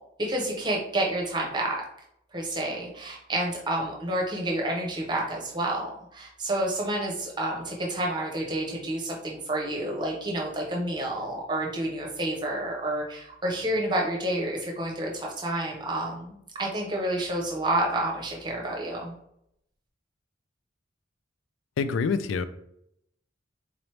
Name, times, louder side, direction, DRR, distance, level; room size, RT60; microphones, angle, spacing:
voice 1, 0.2-1.8 2.3-19.1, right 1 dB, 20° right, -2 dB, 0.8 m, -29 dB
voice 2, 21.8-22.4, left 5 dB, 80° left, 12 dB, 0.3 m, -26 dB
3.9 x 2.9 x 3.2 m, 0.75 s
head